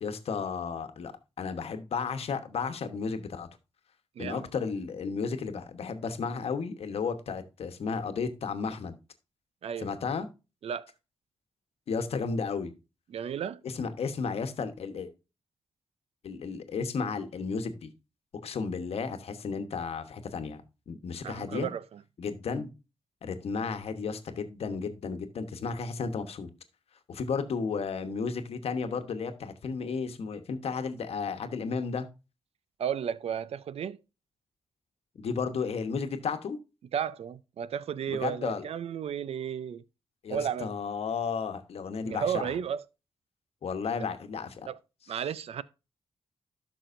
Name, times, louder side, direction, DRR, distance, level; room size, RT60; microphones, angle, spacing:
voice 1, 0.0-1.1 1.4-3.5 4.2-9.0 9.8-10.3 11.9-12.7 13.6-15.1 16.2-17.9 18.4-21.7 22.2-22.7 23.2-26.5 27.1-32.1 35.2-36.6 38.1-38.6 40.2-42.4 43.6-44.7, left 5 dB, 75° left, 1.1 m, -33 dB
voice 2, 9.6-9.9 10.6-10.9 13.1-13.6 21.2-22.0 32.8-34.0 36.9-39.8 40.3-40.7 42.0-42.8 44.7-44.8 45.1-45.6, right 8 dB, 80° right, 0.5 m, -33 dB
12.5 x 6.2 x 2.6 m
wide cardioid pair, 100°, 10 cm